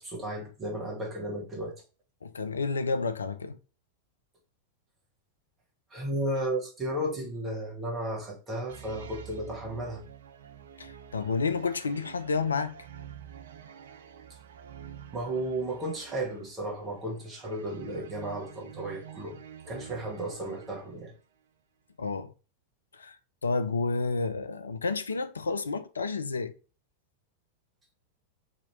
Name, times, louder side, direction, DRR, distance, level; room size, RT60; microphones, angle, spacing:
voice 1, 0.0-1.7 5.9-10.0 15.1-19.4 19.7-21.1, right 1 dB, 20° right, 1.2 m, -34 dB
voice 2, 2.2-3.6 10.8-12.8 22.0-22.3 22.9-23.2 23.4-26.5, left 4 dB, 75° left, 0.4 m, -30 dB
sound 1, 8.7-21.2, right 9 dB, 60° right, 0.4 m, -48 dB
3.0 x 2.8 x 4.0 m
figure-of-eight pair, 90°, 0 cm